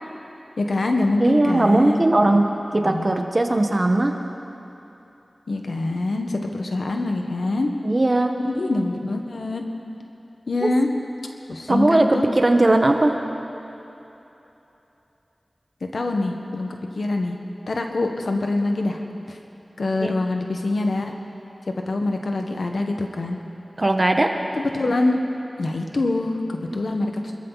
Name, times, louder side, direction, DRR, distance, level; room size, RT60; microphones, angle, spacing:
voice 1, 0.6-2.1 2.8-3.1 5.5-7.7 8.4-9.6 10.5-10.9 11.5-12.2 15.9-17.4 17.7-19.0 19.3-19.4 19.8-21.1 21.7-23.4 24.5-25.2 25.6-27.3, left 2 dB, 80° left, 3 dB, 1.4 m, -24 dB
voice 2, 1.2-4.2 7.8-8.4 11.7-13.2 20.0-20.1 23.8-24.3, right 2 dB, 40° right, 4 dB, 1.4 m, -19 dB
25.5 x 14.0 x 4.1 m, 3.0 s
cardioid pair, 45°, 0 cm